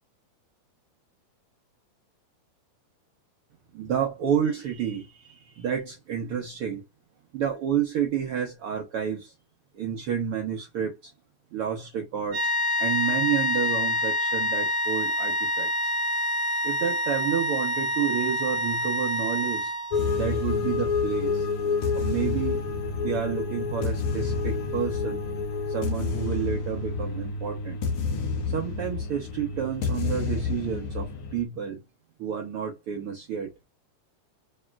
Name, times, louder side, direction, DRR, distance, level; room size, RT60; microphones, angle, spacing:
voice 1, 3.7-6.8 7.3-9.3 9.7-11.1 11.5-12.4 12.8-15.9 16.6-21.5 21.9-22.7 23.0-25.2 25.7-27.8 28.5-31.8 32.2-33.5, right 8 dB, 80° right, 1.2 m, -30 dB
sound 1, 12.3-20.2, left 2 dB, 60° right, 1.6 m, -27 dB
sound 2, 19.9-31.4, left 4 dB, 80° left, 1.1 m, -29 dB
4.8 x 3.1 x 2.3 m
omnidirectional pair, 3.6 m